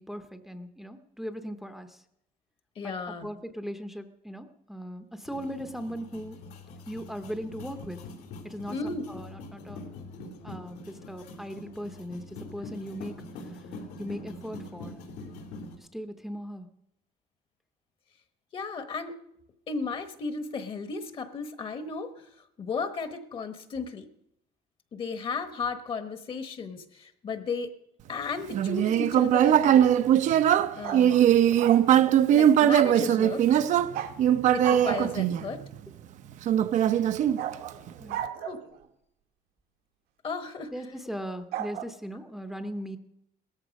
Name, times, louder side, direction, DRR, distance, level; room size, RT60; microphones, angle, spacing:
voice 1, 0.0-2.0 2.8-6.4 6.9-8.0 8.4-8.8 9.1-9.8 10.4-13.7 14.0-15.0 15.8-16.7 38.0-38.2 40.7-43.0, equal, ahead, 8 dB, 0.7 m, -38 dB
voice 2, 2.8-3.3 8.7-9.0 18.5-19.2 19.7-22.3 22.6-24.1 24.9-27.7 28.1-29.9 30.8-31.2 32.3-33.4 34.5-35.6 38.4-38.6 40.2-40.7, left 4 dB, 35° left, 10 dB, 1.1 m, -34 dB
sound 1, 5.2-15.7, left 2 dB, 90° left, 3.1 m, -44 dB
Human voice, 28.5-35.9 36.5-37.9, right 10 dB, 50° right, 0.6 m, -21 dB
sound 2, 30.8-31.9 33.9-34.2 34.6-35.3 37.4-38.8 41.5-41.9, right 11 dB, 75° right, 1.3 m, -34 dB
17.5 x 14.0 x 5.2 m, 0.78 s
cardioid pair, 165°, 16 cm